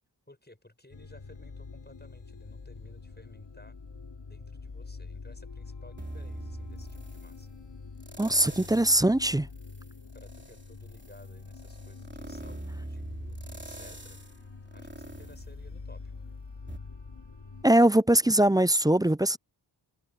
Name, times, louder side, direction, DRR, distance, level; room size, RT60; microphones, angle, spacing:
voice 1, 0.3-3.8 4.3-7.5 8.4-8.6 10.1-14.2 14.7-16.0, left 1 dB, 25° left, 7.4 m, -56 dB
sound 1, 0.9-17.6, left 4 dB, 85° left, 2.7 m, -45 dB
sound 2, 6.0-7.4 8.0-9.1 9.5-16.2 16.7-16.8, right 1 dB, 25° right, 3.2 m, -43 dB
voice 2, 8.2-9.5 17.6-19.4, right 1 dB, 10° right, 0.4 m, -22 dB
wide cardioid pair, 60°, 42 cm